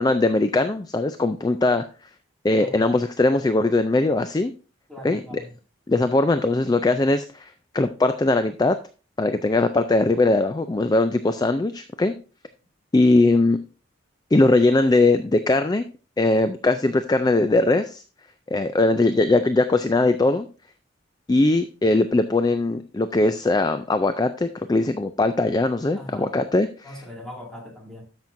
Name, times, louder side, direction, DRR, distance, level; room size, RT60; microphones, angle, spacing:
voice 1, 0.0-1.8 2.4-4.5 5.0-5.2 5.9-8.8 9.2-12.1 12.9-13.6 14.3-15.8 16.2-18.0 18.5-20.5 21.3-26.9, left 2 dB, 20° left, 10 dB, 0.3 m, -20 dB
voice 2, 2.6-2.9 4.9-5.6 25.9-26.3 26.8-28.0, left 1 dB, 5° left, -2 dB, 2.3 m, -40 dB
13.0 x 6.0 x 2.6 m, 0.34 s
head